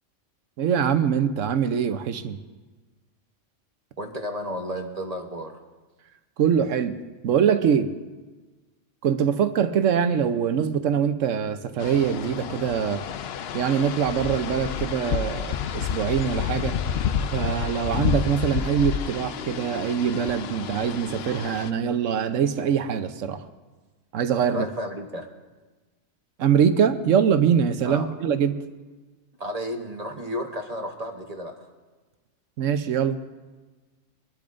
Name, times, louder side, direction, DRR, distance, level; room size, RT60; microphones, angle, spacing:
voice 1, 0.6-2.4 6.4-7.0 7.2-7.9 9.0-13.0 13.5-16.8 17.3-23.5 24.1-24.7 26.4-28.6 32.6-33.2, right 7 dB, 90° right, 9 dB, 1.1 m, -23 dB
voice 2, 4.0-5.6 24.5-25.3 27.8-28.1 29.4-31.7, equal, 35° right, 3 dB, 1.1 m, -32 dB
sound 1, 11.8-21.7, left 8 dB, 65° left, 0.7 m, -30 dB
25.0 x 12.0 x 2.6 m, 1.3 s
omnidirectional pair, 1.3 m